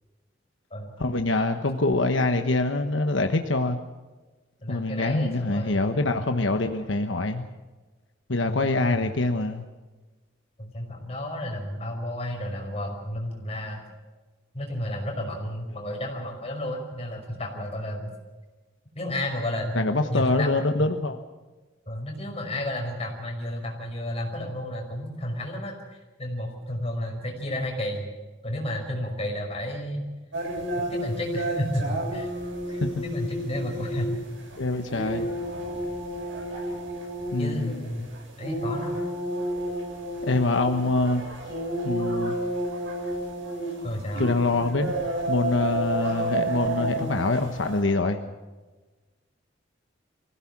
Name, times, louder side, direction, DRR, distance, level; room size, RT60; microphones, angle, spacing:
voice 1, 1.0-3.8 4.7-7.4 8.3-9.6 19.7-21.2 32.8-33.0 34.6-35.3 37.3-37.8 40.2-41.2 41.8-42.4 44.2-44.9 45.3-48.2, left 2 dB, 80° left, 6 dB, 1.2 m, -25 dB
voice 2, 4.6-6.3 8.5-9.1 10.6-13.8 14.5-18.1 19.0-20.5 20.8-20.9 21.9-28.1 28.4-30.1 30.7-32.3 32.7-34.1 34.9-35.2 37.4-38.1 38.4-39.0 43.8-44.2, left 1 dB, 35° left, 1 dB, 5.5 m, -32 dB
sound 1, 30.3-47.8, right 1 dB, 85° right, 7.9 m, -31 dB
24.0 x 16.5 x 7.4 m, 1.3 s
head